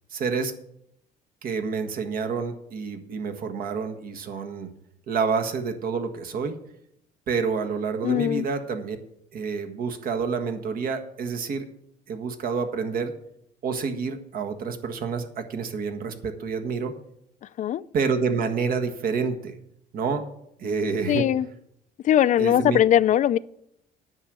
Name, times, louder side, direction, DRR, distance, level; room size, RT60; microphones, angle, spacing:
voice 1, 0.1-0.5 1.4-4.7 5.1-6.6 7.3-9.0 9.3-11.6 12.1-13.1 13.6-16.9 17.9-19.5 19.9-20.2 20.6-21.3 22.4-22.8, right 5 dB, 60° right, 1.5 m, -28 dB
voice 2, 8.0-8.5 17.6-17.8 21.1-21.5 22.0-23.4, left 11 dB, 45° left, 0.4 m, -20 dB
9.8 x 6.4 x 8.2 m
cardioid pair, 110°, 17 cm